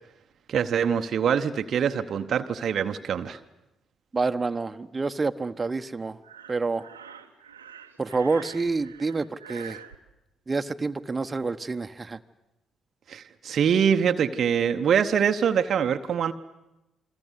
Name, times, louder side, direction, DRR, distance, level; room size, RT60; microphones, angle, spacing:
voice 1, 0.5-3.4 13.1-16.3, right 7 dB, 55° right, 9 dB, 0.9 m, -24 dB
voice 2, 4.1-6.2 6.5-6.9 8.0-9.8 10.5-12.2, right 3 dB, 30° right, 8 dB, 1.1 m, -28 dB
Breathing, 6.2-10.0, right 8 dB, 90° right, 0.9 m, -45 dB
28.5 x 23.0 x 8.2 m, 0.96 s
figure-of-eight pair, 40°, 0 cm